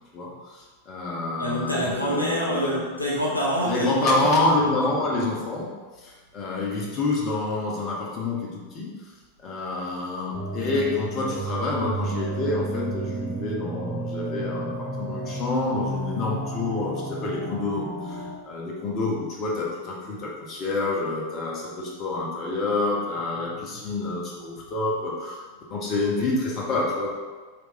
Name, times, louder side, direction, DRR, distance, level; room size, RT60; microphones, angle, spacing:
voice 1, 0.1-2.8 3.6-8.9 9.4-25.4 25.7-27.1, left 2 dB, 30° left, -3 dB, 0.8 m, -28 dB
voice 2, 1.4-4.9 23.8-23.9, equal, 85° left, -4 dB, 0.5 m, -27 dB
sound 1, 10.3-18.3, right 2 dB, 20° right, 1.0 m, -32 dB
3.1 x 2.5 x 3.5 m, 1.4 s
figure-of-eight pair, 90°, 0 cm